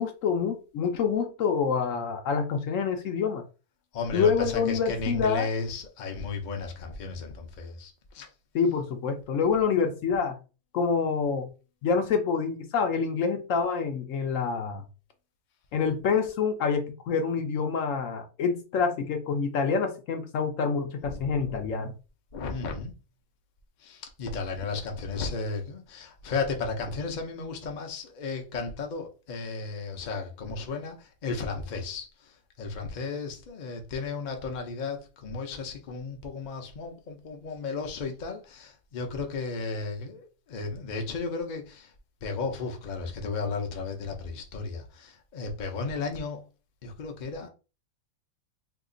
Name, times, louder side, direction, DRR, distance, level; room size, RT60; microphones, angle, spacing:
voice 1, 0.0-3.4 4.1-5.5 8.5-10.4 10.7-11.5 11.8-14.8 15.7-21.9, left 5 dB, 70° left, 0.9 m, -27 dB
voice 2, 3.9-8.3 21.0-21.7 22.3-22.9 23.8-32.1 32.6-41.9 42.2-46.4 46.8-47.5, left 4 dB, 45° left, 0.6 m, -34 dB
2.9 x 2.4 x 3.7 m
omnidirectional pair, 1.5 m